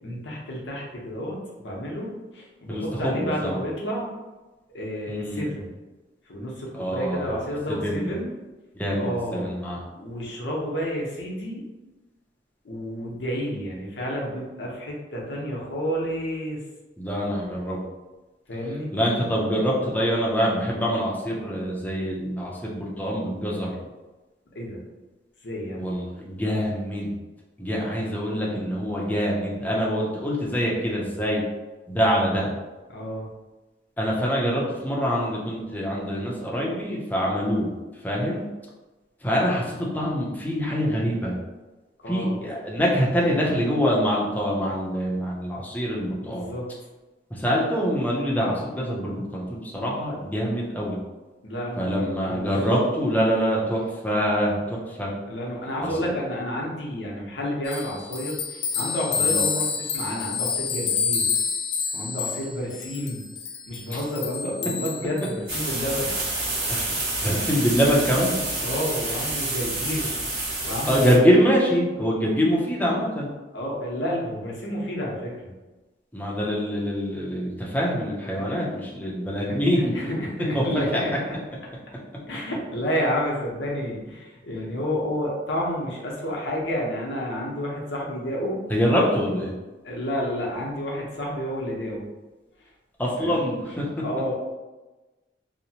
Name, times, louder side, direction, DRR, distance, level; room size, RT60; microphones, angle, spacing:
voice 1, 0.0-4.1 4.7-5.7 6.3-8.3 9.0-9.5 10.0-11.6 12.6-16.6 18.5-18.9 24.5-24.8 25.4-25.8 32.9-33.3 42.0-42.4 46.2-46.7 51.4-52.7 55.3-61.3 61.9-63.2 63.7-66.1 66.8-66.9 68.6-70.1 70.6-71.2 73.5-75.5 78.3-78.7 79.5-81.4 82.3-88.6 89.8-92.1 93.2-93.4 93.7-93.8 94.0-94.3, equal, 90° left, -3 dB, 0.7 m, -30 dB
voice 2, 2.7-3.6 5.1-5.4 6.7-7.2 7.8-8.1 8.8-9.8 17.0-17.8 18.9-23.8 25.8-27.2 27.6-31.4 31.9-32.5 34.0-37.7 38.0-38.4 39.2-41.3 42.1-46.5 47.4-51.0 51.8-55.1 63.9-64.0 66.7-66.8 67.2-68.4 70.9-73.3 76.1-79.9 80.5-80.6 88.7-89.5 93.0-93.8, equal, 10° left, -4 dB, 0.5 m, -24 dB
sound 1, 57.7-65.7, left 6 dB, 65° left, 0.4 m, -28 dB
sound 2, 65.5-71.1, right 2 dB, 60° right, 1.3 m, -28 dB
2.8 x 2.0 x 2.7 m, 1.1 s
head